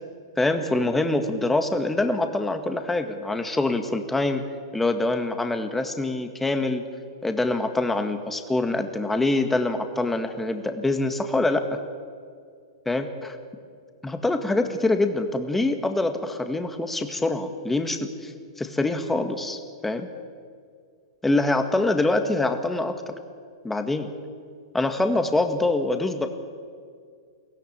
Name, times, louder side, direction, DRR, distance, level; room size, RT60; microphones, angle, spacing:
voice 1, 0.4-4.4 4.7-6.8 7.2-11.8 12.9-13.3 14.0-18.3 18.6-20.1 21.2-23.2 23.6-24.1 24.7-26.3, left 2 dB, 10° left, 7 dB, 1.8 m, -25 dB
23.0 x 16.5 x 8.9 m, 2.1 s
hypercardioid pair, 105°, 2 cm